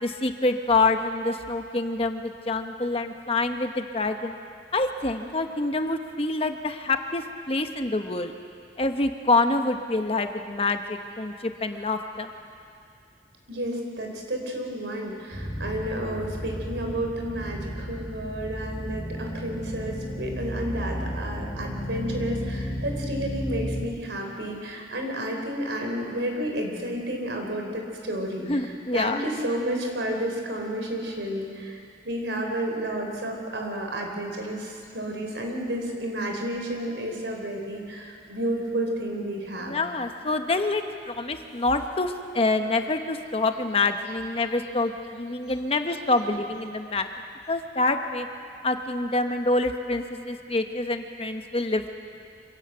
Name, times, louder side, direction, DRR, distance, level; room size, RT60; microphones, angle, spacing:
voice 1, 0.0-4.4 4.7-8.3 8.8-12.3 28.5-29.2 39.6-47.1 47.5-48.3 48.6-51.9, left 2 dB, 35° left, 6 dB, 1.1 m, -26 dB
voice 2, 13.5-39.8, right 1 dB, 85° right, 2 dB, 4.1 m, -31 dB
sound 1, 15.3-23.8, equal, 25° right, 6.5 m, -33 dB
25.0 x 17.5 x 8.0 m, 2.3 s
head